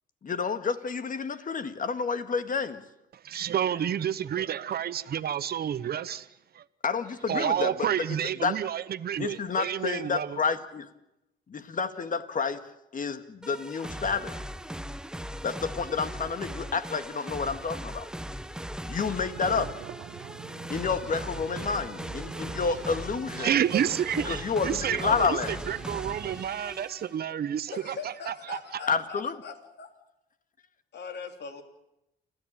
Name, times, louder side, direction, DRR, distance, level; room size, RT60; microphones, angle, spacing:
voice 1, 0.2-2.8 6.8-7.9 8.4-8.6 9.2-10.9 11.5-12.6 12.9-14.4 15.4-18.1 18.9-19.7 20.7-23.5 24.3-25.6 28.9-29.3, left 5 dB, 40° left, 1.8 m, -29 dB
voice 2, 3.1-6.3 6.5-6.6 7.3-10.4 23.4-28.8, right 9 dB, 50° right, 0.9 m, -30 dB
sound 1, 13.4-27.2, equal, 5° right, 0.9 m, -39 dB
sound 2, 19.4-26.4, right 11 dB, 75° right, 1.2 m, -45 dB
voice 3, 27.7-29.9 30.9-31.6, left 5 dB, 60° left, 3.3 m, -41 dB
29.0 x 13.5 x 8.9 m
cardioid pair, 90°, 20 cm